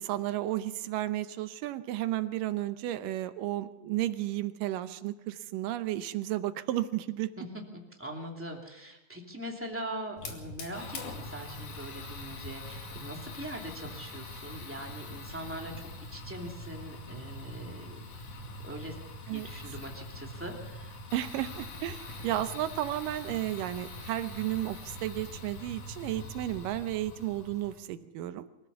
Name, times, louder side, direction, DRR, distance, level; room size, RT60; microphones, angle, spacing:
voice 1, 0.0-7.3 19.3-19.5 21.1-28.5, right 14 dB, 75° right, 11 dB, 2.2 m, -33 dB
voice 2, 8.0-18.0 18.6-18.9 19.3-21.0, right 1 dB, 5° right, 0 dB, 2.0 m, -42 dB
Fire, 10.2-27.8, left 2 dB, 60° left, 3.7 m, -43 dB
24.0 x 15.5 x 7.0 m, 0.97 s
omnidirectional pair, 4.3 m